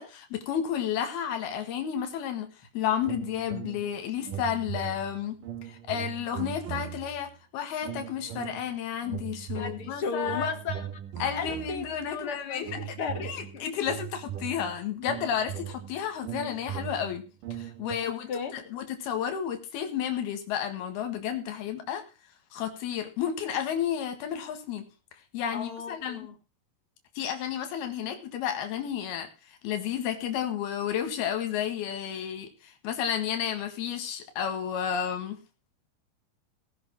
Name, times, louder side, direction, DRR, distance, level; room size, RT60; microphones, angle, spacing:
voice 1, 0.0-2.5 2.8-5.4 5.7-10.5 11.2-12.8 13.2-17.2 17.6-22.0 22.5-24.8 25.3-26.3 27.2-29.3 29.6-35.4, left 9 dB, 85° left, 6 dB, 3.6 m, -32 dB
sound 1, 3.0-4.0 4.2-7.3 7.8-8.7 9.0-12.1 12.6-18.0, right 10 dB, 65° right, 2.7 m, -39 dB
voice 2, 9.5-10.9 11.3-13.6 18.0-18.5 25.5-26.4, left 5 dB, 45° left, 6 dB, 2.3 m, -35 dB
18.0 x 6.1 x 6.1 m, 0.34 s
omnidirectional pair, 4.3 m